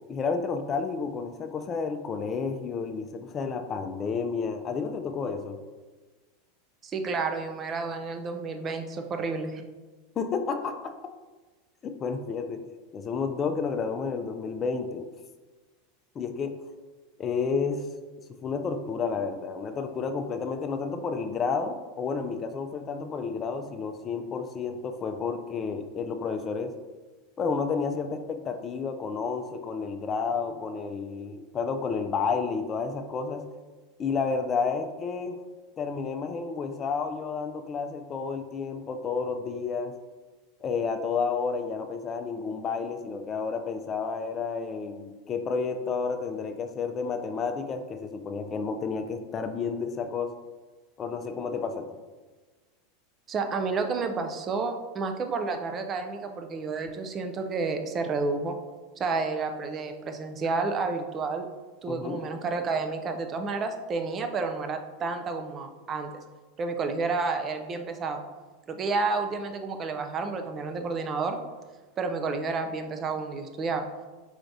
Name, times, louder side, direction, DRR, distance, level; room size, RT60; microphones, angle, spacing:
voice 1, 0.1-5.6 10.2-10.9 11.8-12.6 12.9-15.1 16.2-16.5 17.2-17.8 18.4-26.7 27.4-33.4 34.0-35.4 35.8-39.9 40.6-50.3 51.0-51.9 61.9-62.2, left 5 dB, 30° left, 7 dB, 0.4 m, -31 dB
voice 2, 6.8-9.6 53.3-58.6 59.0-61.5 61.8-66.1 66.6-68.2 68.7-71.4 72.0-73.9, right 4 dB, 35° right, 6 dB, 0.5 m, -30 dB
4.8 x 3.2 x 2.6 m, 1.3 s
hypercardioid pair, 105°, 0 cm